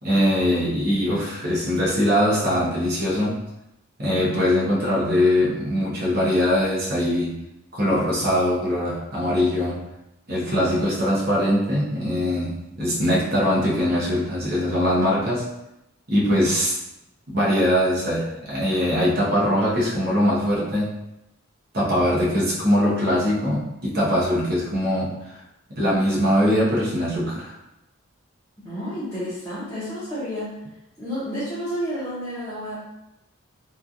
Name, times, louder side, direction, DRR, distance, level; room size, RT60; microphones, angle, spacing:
voice 1, 0.0-3.4 4.0-7.4 7.7-9.8 10.3-15.5 16.1-16.7 17.3-20.9 21.7-25.1 25.8-27.5, equal, 45° right, -6 dB, 0.8 m, -22 dB
voice 2, 28.6-30.5 31.0-32.8, equal, 15° left, -12 dB, 0.7 m, -30 dB
3.0 x 2.4 x 2.5 m, 0.89 s
head